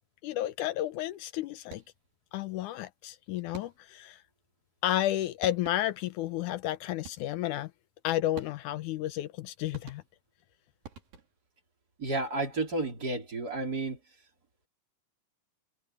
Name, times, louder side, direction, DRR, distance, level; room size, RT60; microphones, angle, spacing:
voice 1, 0.2-1.8 2.3-4.2 4.8-7.7 8.0-10.0, left 14 dB, 75° left, 1.9 m, -32 dB
sound 1, 1.6-2.1 3.5-4.1 5.1-5.2 5.4-6.1 7.0-7.5 8.4-8.9 9.7-10.4 10.8-11.5, right 5 dB, 70° right, 5.7 m, -49 dB
voice 2, 12.0-14.0, right 2 dB, 25° right, 3.7 m, -31 dB
omnidirectional pair, 4.1 m